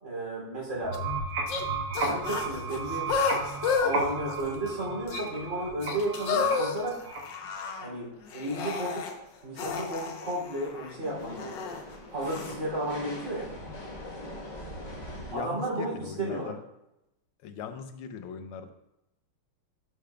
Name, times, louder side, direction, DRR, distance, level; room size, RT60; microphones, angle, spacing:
voice 1, 0.0-1.0 2.0-3.1 3.8-7.0 7.8-9.1 9.4-11.7 12.1-13.5 15.3-16.5, right 1 dB, 35° right, -5 dB, 3.0 m, -33 dB
sound 1, 0.7-7.5, right 3 dB, 75° right, 2.1 m, -34 dB
sound 2, 0.9-1.0 1.5-1.6 1.9-3.9 4.3-4.8 5.1-5.2 5.8-7.9 8.3-9.1 9.6-11.8 12.3-12.5, left 5 dB, 65° left, 1.4 m, -31 dB
sound 3, 1.3-1.4 1.7-1.9 2.4-2.5 5.5-5.6 6.1-15.3, left 1 dB, 30° left, 0.9 m, -44 dB
voice 2, 15.3-16.6 17.4-18.7, left 7 dB, 90° left, 8 dB, 1.6 m, -39 dB
11.5 x 6.3 x 2.2 m, 0.88 s
omnidirectional pair, 2.4 m